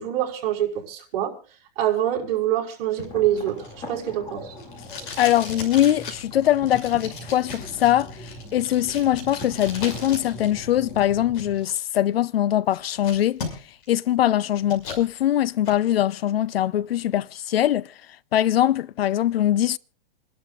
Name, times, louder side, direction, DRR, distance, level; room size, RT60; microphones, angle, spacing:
voice 1, 0.0-1.3 1.8-4.5, right 11 dB, 40° right, 5.3 m, -25 dB
Packing tape duct tape, 3.0-10.5 10.8-11.8 12.3-12.4 12.7-13.9 14.2-15.0 15.4-15.8, left 4 dB, 60° left, 6.0 m, -38 dB
sound 1, 3.1-11.5, equal, 15° left, 2.5 m, -40 dB
voice 2, 5.2-8.1 8.5-13.4 13.9-17.9 18.3-19.8, left 12 dB, 90° left, 0.7 m, -22 dB
28.5 x 12.0 x 2.5 m
hypercardioid pair, 165°, 29 cm